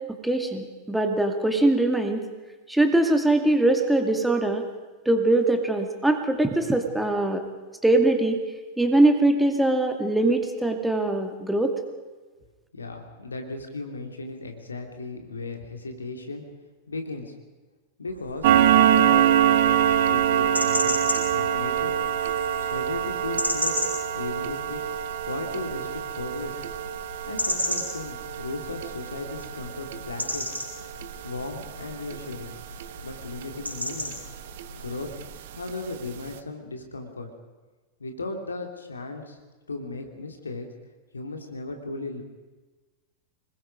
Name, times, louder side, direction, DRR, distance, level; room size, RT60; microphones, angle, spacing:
voice 1, 0.1-2.2 2.7-4.7 5.1-7.4 7.8-8.4 8.8-11.7, right 2 dB, 5° right, 5 dB, 2.3 m, -22 dB
voice 2, 12.7-16.4 16.9-17.3 18.0-21.0 21.3-22.0 22.7-23.8 24.1-24.8 25.2-26.6 27.3-30.5 31.2-32.5 33.0-34.1 34.7-35.1 35.5-37.3 38.0-39.4 39.7-40.7 41.1-42.2, left 3 dB, 75° left, 4 dB, 2.7 m, -36 dB
sound 1, 18.1-35.3, equal, 85° right, 5.2 m, -35 dB
sound 2, 18.4-33.5 33.9-34.1 34.6-34.7 35.1-35.2 35.7-35.8 36.1-36.2, right 9 dB, 55° right, 1.2 m, -25 dB
26.0 x 21.0 x 5.3 m, 1.3 s
figure-of-eight pair, 90°, 0 cm